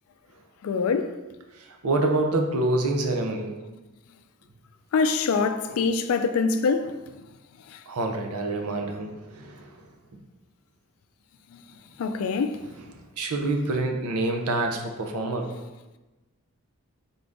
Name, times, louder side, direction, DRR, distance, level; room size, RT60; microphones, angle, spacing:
voice 1, 0.6-1.2 4.9-7.0 7.7-7.8 12.0-12.6, left 5 dB, 75° left, 0.3 m, -24 dB
voice 2, 1.5-3.5 7.9-9.9 10.1-10.2 12.9-15.5, right 2 dB, 90° right, 0.6 m, -27 dB
3.8 x 3.5 x 3.8 m
head